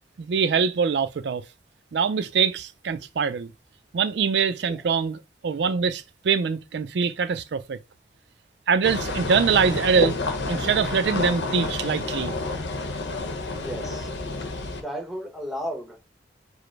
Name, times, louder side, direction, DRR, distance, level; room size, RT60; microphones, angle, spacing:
voice 1, 0.2-1.4 1.9-3.5 3.9-7.8 8.7-10.1 10.5-12.4, right 6 dB, 70° right, 0.4 m, -23 dB
sound 1, 8.8-14.8, left 3 dB, 75° left, 0.9 m, -29 dB
voice 2, 13.6-14.1 14.8-16.1, equal, ahead, 1.0 m, -34 dB
5.0 x 2.0 x 4.5 m
head